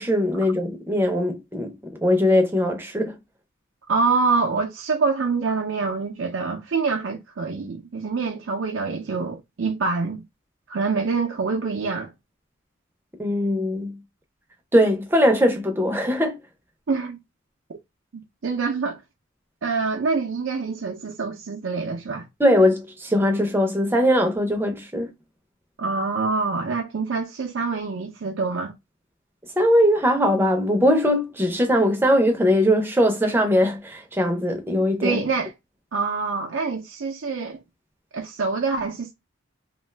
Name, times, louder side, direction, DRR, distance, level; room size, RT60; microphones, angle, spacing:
voice 1, 0.0-1.7 2.0-3.1 13.2-14.0 14.7-16.4 22.4-25.1 29.6-35.2, equal, 10° right, 0.6 m, -20 dB
voice 2, 3.9-10.2 10.7-12.1 16.9-17.2 18.1-19.0 19.6-22.3 25.8-28.7 35.0-35.5 35.9-37.6 38.1-39.1, right 4 dB, 70° right, 0.5 m, -25 dB
2.5 x 2.3 x 3.2 m
head